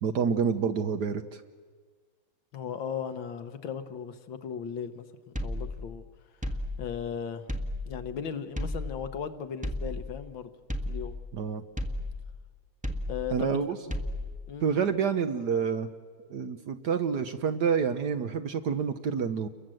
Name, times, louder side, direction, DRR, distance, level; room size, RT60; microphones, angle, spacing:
voice 1, 0.0-1.4 11.3-11.6 13.3-13.8 14.6-15.9 16.3-19.5, right 6 dB, 60° right, 9 dB, 1.3 m, -28 dB
voice 2, 2.5-6.0 6.8-7.4 7.9-10.5 10.8-11.1 13.1-13.5 14.5-14.7, left 7 dB, 65° left, 9 dB, 1.7 m, -37 dB
sound 1, 5.4-6.1 6.4-7.1 7.5-8.2 8.6-9.3 9.6-10.3 10.7-11.4 11.8-12.5 12.8-13.5 13.9-14.5, left 1 dB, 5° right, 1.0 m, -34 dB
29.5 x 22.5 x 7.7 m, 1.5 s
omnidirectional pair, 2.4 m